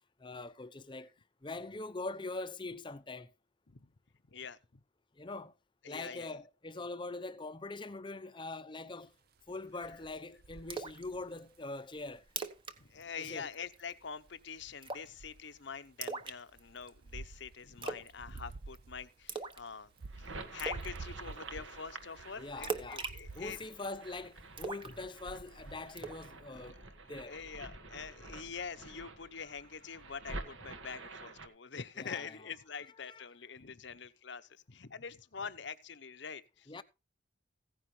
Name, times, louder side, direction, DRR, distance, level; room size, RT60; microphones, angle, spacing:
voice 1, 0.2-1.1 1.4-3.3 5.2-5.5 5.9-9.1 9.5-12.2 13.2-13.5 22.4-23.0 23.4-26.8 27.1-27.3 32.0-32.3 33.0-33.2 36.7-36.8, left 2 dB, 25° left, 0.7 m, -43 dB
voice 2, 5.8-6.3 12.8-19.9 20.2-23.6 26.4-26.9 27.2-36.7, left 6 dB, 60° left, 0.9 m, -45 dB
sound 1, 9.4-12.2 13.9-14.7 15.0-15.9 16.5-24.2 24.9-25.9, right 3 dB, 50° right, 0.6 m, -50 dB
Splash splatter, 10.7-11.0 11.4-11.5 11.9-12.0 12.3-12.8 13.0-13.2 13.5-13.9 14.8-15.2 16.0-16.9 17.8-18.1 18.4-18.8 19.3-19.7 20.0-20.1 20.6-20.9 22.6-23.9 24.6-25.5 26.0-26.2, right 4 dB, 25° right, 1.1 m, -39 dB
sound 2, 20.0-31.5, right 2 dB, 70° right, 1.9 m, -49 dB
16.0 x 10.0 x 3.2 m
head